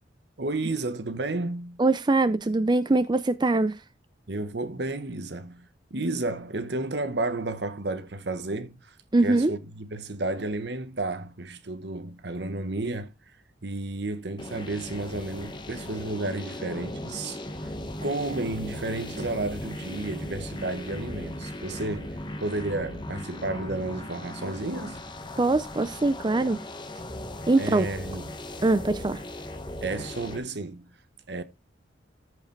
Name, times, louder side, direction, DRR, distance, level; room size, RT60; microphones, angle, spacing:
voice 1, 0.4-1.8 4.3-8.9 9.2-13.1 13.6-17.7 18.0-25.0 27.6-28.4 28.8-29.2 29.8-30.9 31.3-31.4, right 2 dB, 65° right, 1.1 m, -32 dB
voice 2, 1.8-3.8 9.1-9.5 25.4-26.6 27.5-27.9 28.6-29.2, right 2 dB, 25° right, 0.5 m, -22 dB
sound 1, 14.4-30.4, left 1 dB, 25° left, 1.5 m, -38 dB
14.0 x 4.9 x 3.2 m
head